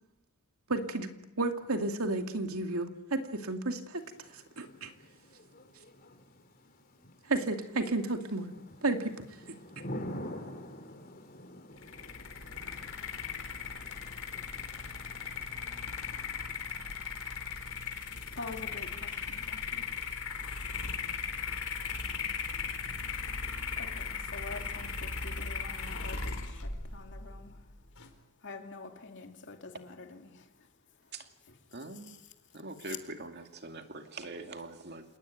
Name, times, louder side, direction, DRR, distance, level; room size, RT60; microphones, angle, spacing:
voice 1, 0.7-1.1 1.4-4.0 4.6-4.9 7.3-8.5 8.8-9.2, right 2 dB, 80° right, 5 dB, 2.6 m, -32 dB
Thunder / Rain, 3.9-16.7, left 1 dB, 40° left, 3.6 m, -48 dB
sound 1, 11.8-28.1, left 5 dB, 80° left, 4.3 m, -38 dB
voice 2, 18.3-19.9 21.9-22.0 23.8-27.5 28.4-30.4 31.5-31.6 32.0-32.2 32.8-33.0, left 3 dB, 55° left, 4 dB, 2.6 m, -46 dB
voice 3, 31.7-32.2 32.5-35.0, right 2 dB, 50° right, 5 dB, 2.4 m, -43 dB
28.0 x 19.5 x 9.4 m, 0.90 s
head